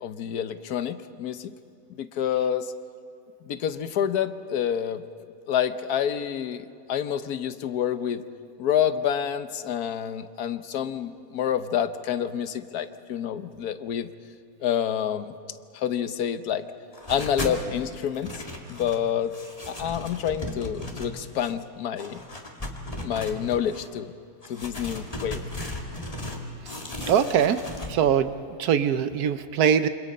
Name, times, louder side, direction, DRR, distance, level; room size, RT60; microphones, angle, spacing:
voice 1, 0.0-1.5 2.0-2.7 3.4-5.0 5.5-8.2 8.6-14.1 14.6-15.3 15.7-16.6 17.1-18.4 18.7-19.3 19.7-22.2 23.0-24.1 24.5-25.4, left 9 dB, 85° left, 11 dB, 1.4 m, -28 dB
sound 1, 16.9-17.6 18.0-19.0 19.3-21.5 22.0-23.9 24.4-26.4 26.7-27.9, left 1 dB, 25° left, 2.1 m, -36 dB
voice 2, 27.1-27.6 27.9-28.3 28.6-29.9, right 8 dB, 85° right, 11 dB, 1.3 m, -22 dB
27.5 x 26.0 x 5.4 m, 2.5 s
omnidirectional pair, 1.6 m